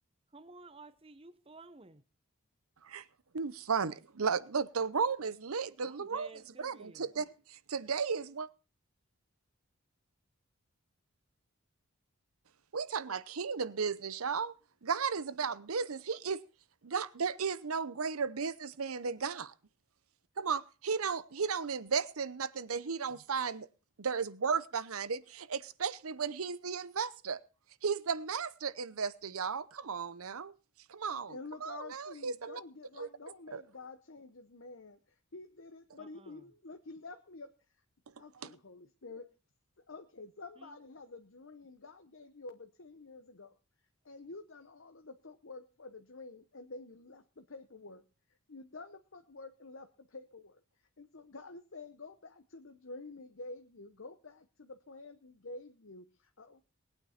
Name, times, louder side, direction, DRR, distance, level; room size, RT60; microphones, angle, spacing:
voice 1, 0.3-2.0 5.8-7.1 36.0-36.4 40.6-40.7, right 3 dB, 25° right, 0.8 m, -53 dB
voice 2, 3.3-8.5 12.7-14.5 14.8-16.4 16.8-19.5 20.4-23.7 24.0-27.4 27.8-30.5 30.9-32.6 33.0-33.1 33.5-33.6 38.4-38.5, right 5 dB, 80° right, 0.8 m, -35 dB
voice 3, 31.3-37.5 38.2-39.3 39.9-43.6 44.0-48.0 48.5-50.6 51.0-56.6, left 3 dB, 60° left, 0.9 m, -49 dB
20.0 x 9.0 x 4.3 m
head